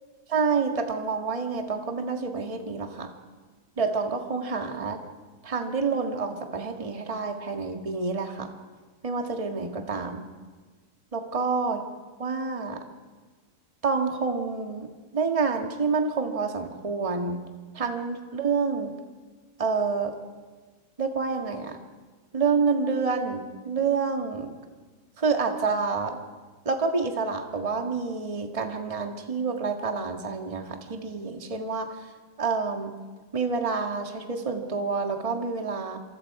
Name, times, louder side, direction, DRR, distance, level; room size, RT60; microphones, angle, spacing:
voice 1, 0.3-3.1 3.8-5.0 5.4-8.5 9.0-10.3 11.1-11.8 12.2-12.8 13.8-14.9 15.1-17.4 17.7-18.9 19.6-20.1 21.0-21.8 22.3-24.5 25.2-26.2 26.6-32.0 32.4-32.9 33.3-36.0, right 4 dB, 20° right, 4 dB, 1.6 m, -28 dB
26.5 x 26.0 x 4.8 m, 1.4 s
omnidirectional pair, 1.8 m